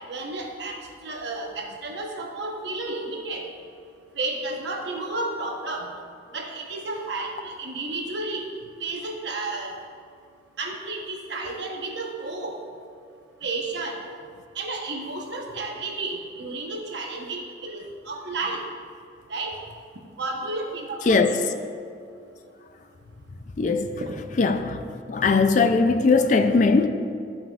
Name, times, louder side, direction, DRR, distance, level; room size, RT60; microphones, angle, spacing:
voice 1, 0.1-0.8 1.0-3.5 4.2-5.9 6.3-8.4 8.8-9.7 10.6-12.6 13.4-14.0 14.6-17.8 18.1-18.6 19.3-19.5 20.2-21.0 21.3-21.4 24.0-24.1, right 2 dB, 65° right, 1 dB, 1.0 m, -32 dB
voice 2, 21.1-21.5 23.6-24.0 24.4-24.8 25.1-26.9, left 4 dB, 40° left, 8 dB, 0.3 m, -20 dB
13.0 x 5.6 x 2.4 m, 2.4 s
head